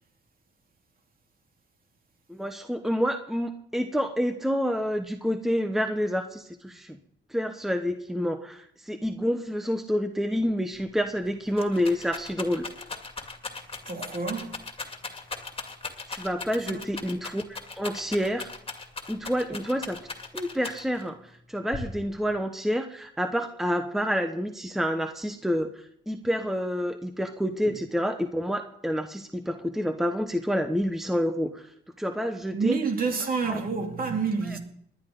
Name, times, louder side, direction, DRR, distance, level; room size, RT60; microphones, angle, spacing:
voice 1, 2.3-7.0 7.3-12.7 16.1-18.5 19.1-20.0 20.3-21.2 21.5-31.7 32.0-32.8 33.5-33.6, equal, ahead, 1.1 m, -28 dB
Rattle, 10.8-10.9 11.2-21.1 21.7-22.3, left 4 dB, 30° left, 2.4 m, -38 dB
voice 2, 13.5-14.6 16.7-16.9 27.6-27.8 32.5-34.6, right 5 dB, 45° right, 2.7 m, -29 dB
20.0 x 11.0 x 3.9 m
cardioid pair, 90°, 20 cm